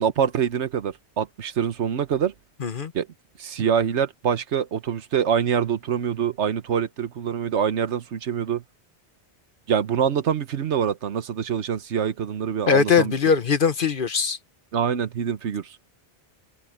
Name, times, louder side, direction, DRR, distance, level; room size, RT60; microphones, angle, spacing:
voice 1, 0.0-2.3 2.9-3.1 3.4-8.6 9.7-13.1 14.7-15.8, right 8 dB, 80° right, 1.2 m, -25 dB
voice 2, 2.6-2.9 12.7-14.4, left 6 dB, 50° left, 1.2 m, -21 dB
open air
omnidirectional pair, 1.1 m